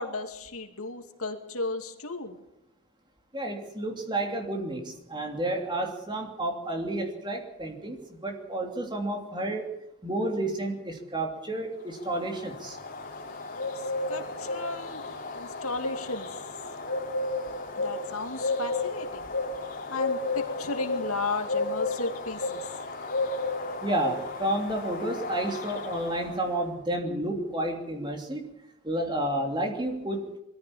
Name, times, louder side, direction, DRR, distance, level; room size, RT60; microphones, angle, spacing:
voice 1, 0.0-2.4 14.1-15.0 15.3-16.3 17.8-19.3 19.9-22.6, left 3 dB, 80° left, 6 dB, 2.5 m, -34 dB
voice 2, 3.3-9.7 10.0-12.8 23.8-28.4 28.8-30.4, right 1 dB, 20° right, 2 dB, 3.0 m, -31 dB
Bird, 11.9-26.6, left 3 dB, 40° left, 3.4 m, -33 dB
22.0 x 14.5 x 8.8 m, 0.86 s
head